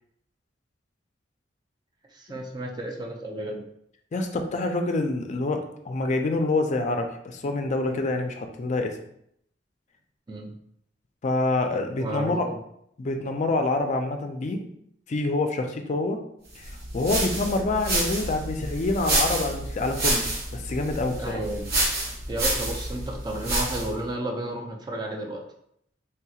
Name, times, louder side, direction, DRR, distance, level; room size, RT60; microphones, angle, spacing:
voice 1, 2.1-3.6 10.3-10.6 12.0-12.6 21.2-21.7 22.3-25.4, right 1 dB, 25° right, 1 dB, 0.5 m, -32 dB
voice 2, 4.1-9.0 11.2-12.4 13.0-14.6 15.1-16.2 16.5-21.4, left 2 dB, 40° left, 5 dB, 0.4 m, -27 dB
sound 1, 16.6-24.0, right 1 dB, 55° right, 0.9 m, -28 dB
3.4 x 2.8 x 2.3 m, 0.72 s
head